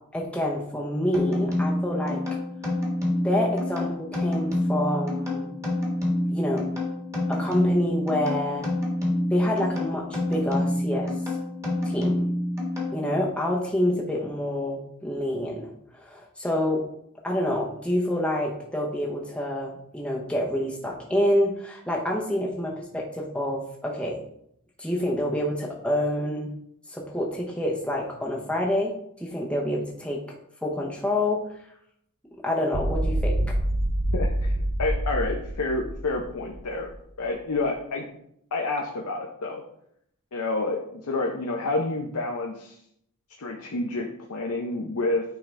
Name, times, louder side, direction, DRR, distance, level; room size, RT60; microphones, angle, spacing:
voice 1, 0.1-2.2 3.2-5.5 6.3-6.7 7.3-8.7 9.3-11.1 11.8-12.2 12.9-16.8 17.2-24.2 24.8-26.5 26.9-30.2 30.6-31.4 32.4-33.6, left 1 dB, 5° left, -2 dB, 0.8 m, -27 dB
sound 1, 1.1-13.3, left 1 dB, 15° right, 1.5 m, -27 dB
sound 2, 32.7-36.9, right 1 dB, 55° right, 0.7 m, -26 dB
voice 2, 34.1-36.9 37.2-38.1 38.5-39.6 40.3-42.8 43.4-45.2, left 2 dB, 85° left, 1 dB, 0.7 m, -29 dB
9.1 x 3.8 x 3.3 m, 0.72 s
head